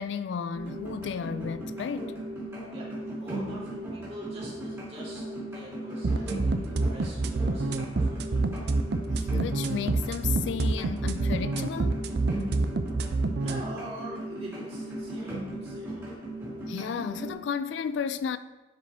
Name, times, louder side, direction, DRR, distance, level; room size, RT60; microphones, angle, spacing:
voice 1, 0.0-2.2 9.1-12.0 16.7-18.4, left 7 dB, 70° left, 0.3 m, -33 dB
sound 1, 0.5-17.3, right 1 dB, 15° right, 2.6 m, -37 dB
voice 2, 3.2-8.7 13.4-16.0, right 1 dB, 35° right, 2.4 m, -44 dB
sound 2, 6.0-13.6, right 3 dB, 55° right, 0.5 m, -27 dB
10.0 x 4.9 x 3.4 m
head